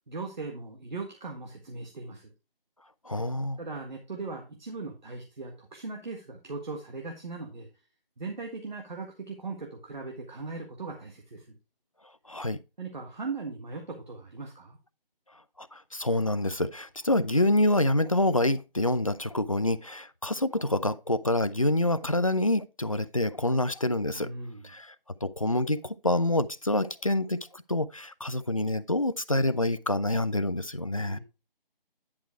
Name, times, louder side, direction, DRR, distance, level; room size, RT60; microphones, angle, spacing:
voice 1, 0.1-2.3 3.6-7.7 8.2-11.6 12.8-14.8 24.2-24.7 31.1-31.2, right 3 dB, 50° right, 1.7 m, -39 dB
voice 2, 3.1-3.6 12.3-12.6 15.6-24.3 24.6-24.9 25.2-27.4 27.7-31.2, left 1 dB, 40° left, 0.4 m, -27 dB
10.5 x 4.5 x 4.5 m
figure-of-eight pair, 165°, 29 cm